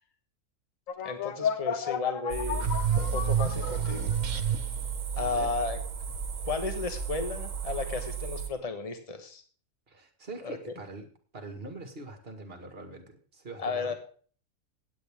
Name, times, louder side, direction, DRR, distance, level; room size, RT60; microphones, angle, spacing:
sound 1, 0.9-4.4, left 8 dB, 70° left, 1.2 m, -33 dB
voice 1, 1.0-4.1 5.1-5.8 6.4-9.4 10.4-10.6 13.6-13.9, left 4 dB, 25° left, 7 dB, 1.5 m, -34 dB
sound 2, 2.3-8.5, right 5 dB, 65° right, 1.7 m, -34 dB
sound 3, 2.6-4.9, right 9 dB, 90° right, 1.5 m, -29 dB
voice 2, 5.2-5.5 9.9-13.9, right 2 dB, 45° right, 6 dB, 2.2 m, -43 dB
16.0 x 9.2 x 3.6 m, 0.43 s
omnidirectional pair, 1.5 m